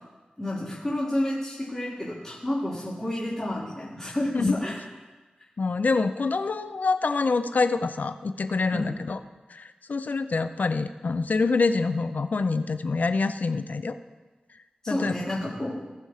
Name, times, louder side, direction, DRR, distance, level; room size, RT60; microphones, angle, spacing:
voice 1, 0.4-4.8 8.7-8.9 14.8-15.9, left 1 dB, 20° left, -9 dB, 3.9 m, -30 dB
voice 2, 5.6-9.2 9.5-14.0 14.9-15.2, left 4 dB, 65° left, 11 dB, 0.5 m, -26 dB
18.0 x 6.8 x 3.3 m, 1.2 s
wide cardioid pair, 60°, 3 cm